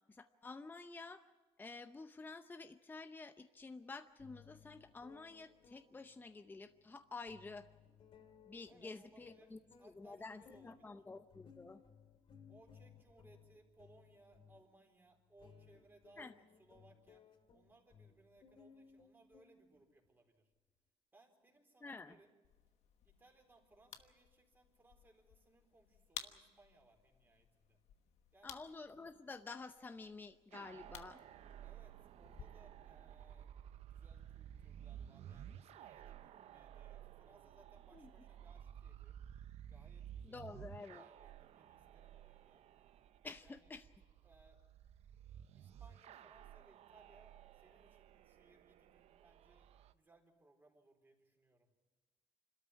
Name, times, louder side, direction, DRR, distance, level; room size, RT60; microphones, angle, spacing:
voice 1, 0.1-1.2 1.6-7.7 8.5-9.6 9.8-11.8 16.2-16.3 21.8-22.2 28.4-31.2 37.9-38.1 40.2-41.0 43.2-43.9, left 3 dB, 15° left, 9 dB, 0.7 m, -50 dB
sound 1, 3.6-3.7 4.2-20.1, left 7 dB, 55° left, 2.1 m, -64 dB
voice 2, 8.6-11.0 12.5-17.3 17.5-20.5 21.1-22.3 23.0-27.8 28.3-28.6 31.6-39.2 39.7-40.5 40.9-42.6 43.4-43.7 44.2-44.6 45.5-51.7, right 2 dB, 20° right, 2 dB, 4.1 m, -67 dB
sound 2, 22.4-32.5, left 10 dB, 80° left, 1.2 m, -56 dB
sound 3, 30.5-49.9, right 10 dB, 70° right, 0.7 m, -55 dB
26.0 x 13.0 x 9.7 m, 1.3 s
cardioid pair, 110°, 11 cm